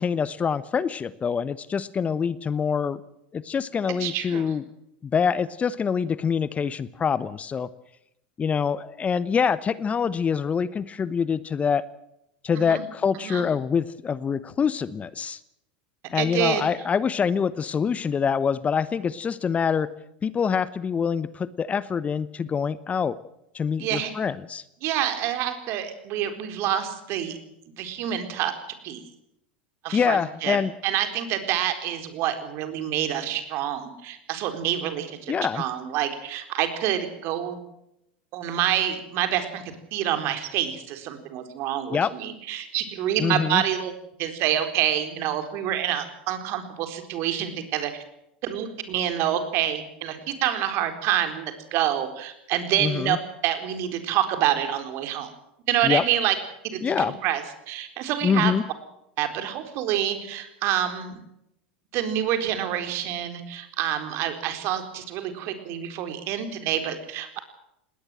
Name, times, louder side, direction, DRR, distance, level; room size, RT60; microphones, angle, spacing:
voice 1, 0.0-3.0 3.3-4.6 5.0-7.7 8.4-11.8 12.4-15.4 16.1-19.9 20.2-23.2 23.5-24.6 29.9-30.7 35.3-35.7 41.9-42.1 43.2-43.6 52.8-53.2 55.8-56.0 56.8-57.1 58.2-58.6, left 6 dB, 25° left, 17 dB, 1.0 m, -25 dB
voice 2, 4.0-4.5 12.6-12.8 13.2-13.4 16.1-16.6 23.8-24.1 24.8-27.4 27.8-28.5 28.8-29.0 29.8-30.6 30.8-37.6 38.3-43.9 44.2-47.9 48.4-53.2 53.4-55.3 55.7-56.4 56.6-58.6 59.2-61.2 61.9-67.4, right 11 dB, 50° right, 7 dB, 4.1 m, -27 dB
20.0 x 18.5 x 7.7 m, 0.81 s
hypercardioid pair, 85°, 5 cm